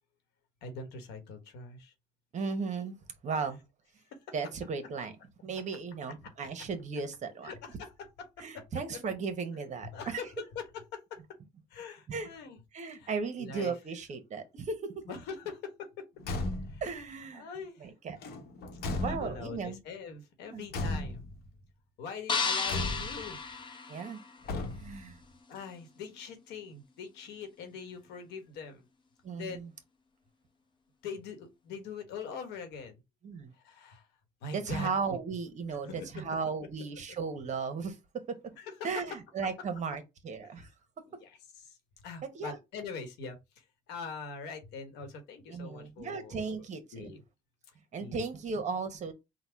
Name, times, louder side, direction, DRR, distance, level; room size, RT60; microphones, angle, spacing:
voice 1, 0.6-1.9 4.1-4.3 7.4-8.7 9.9-11.2 11.7-12.6 12.9-13.1 13.4-13.7 15.1-16.1 16.7-16.8 17.3-17.9 19.1-21.2 22.0-23.4 25.5-28.8 29.3-29.7 31.0-33.0 33.6-34.1 34.4-35.2 35.8-36.3 38.6-39.0 40.4-40.5 41.1-41.8 42.0-47.2 48.0-48.2, left 5 dB, 90° left, 1.3 m, -43 dB
voice 2, 2.3-3.0 3.2-3.6 4.3-5.1 5.4-7.5 8.4-10.2 12.1-12.3 12.7-15.1 16.8-17.5 17.8-18.2 19.0-19.8 20.4-20.6 23.9-24.2 24.7-25.2 29.2-29.7 33.2-33.5 34.5-38.0 38.8-40.7 42.3-42.6 45.5-47.1 47.9-49.1, right 5 dB, 45° right, 1.1 m, -36 dB
Car / Truck / Slam, 16.2-16.9 18.2-19.6 20.7-21.5 22.7-23.3 24.4-25.1, left 2 dB, 70° left, 1.0 m, -35 dB
sound 1, 22.3-24.6, left 5 dB, 30° left, 0.8 m, -33 dB
3.9 x 2.3 x 4.5 m
cardioid pair, 110°, 17 cm